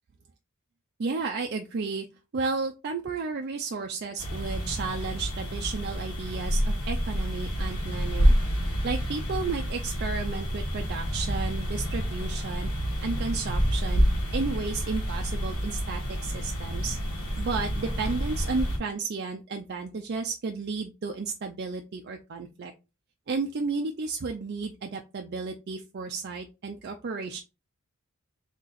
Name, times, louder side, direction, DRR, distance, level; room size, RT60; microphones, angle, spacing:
voice 1, 1.0-2.1 2.3-8.4 8.8-12.7 13.0-14.1 14.3-17.0 17.4-22.7 23.3-27.4, right 4 dB, 45° right, 3 dB, 0.4 m, -33 dB
sound 1, 4.2-18.8, equal, 75° left, 1.5 m, -28 dB
3.9 x 2.9 x 4.1 m, 0.28 s
head